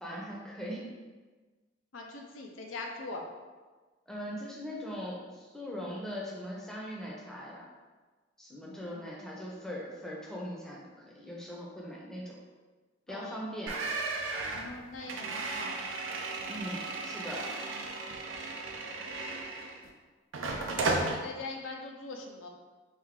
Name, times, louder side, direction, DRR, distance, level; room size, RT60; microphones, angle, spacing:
voice 1, 0.0-0.9 4.1-7.6 8.4-10.8 11.1-12.4 13.1-13.8 16.5-17.5, equal, 5° left, -5 dB, 0.6 m, -40 dB
voice 2, 1.9-3.2 8.6-9.1 13.1-13.6 14.5-15.8 20.8-22.5, left 3 dB, 85° left, 2 dB, 0.5 m, -42 dB
sound 1, 13.7-19.9 20.3-21.2, right 3 dB, 80° right, 0.5 m, -35 dB
3.5 x 2.7 x 3.6 m, 1.3 s
head